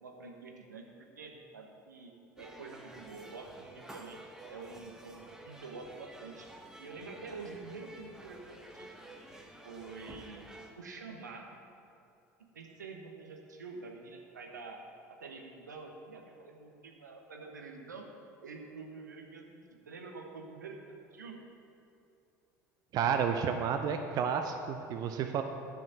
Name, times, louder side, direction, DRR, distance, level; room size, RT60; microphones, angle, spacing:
voice 1, 0.0-4.2 4.5-6.5 6.8-8.9 9.6-11.6 12.4-14.8 15.1-18.1 18.4-19.5 19.7-21.4, right 4 dB, 80° right, 2 dB, 1.1 m, -47 dB
sound 1, 2.4-10.7, right 1 dB, 5° right, 1.1 m, -51 dB
voice 2, 22.9-25.4, right 7 dB, 40° right, 6 dB, 0.6 m, -31 dB
10.5 x 5.1 x 7.9 m, 2.7 s
figure-of-eight pair, 65°, 10 cm